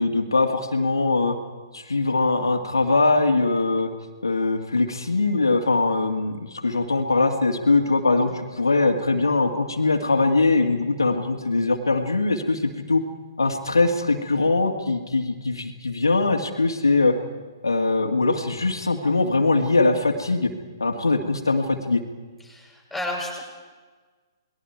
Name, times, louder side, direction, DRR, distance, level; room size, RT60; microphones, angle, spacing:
voice 1, 0.0-1.4 1.7-3.9 4.2-13.0 13.4-17.2 17.6-20.5 20.8-22.0, left 3 dB, 75° left, 3 dB, 2.3 m, -22 dB
voice 2, 22.4-23.4, left 1 dB, ahead, -1 dB, 7.4 m, -32 dB
29.0 x 21.0 x 4.7 m, 1.4 s
figure-of-eight pair, 125°, 2 cm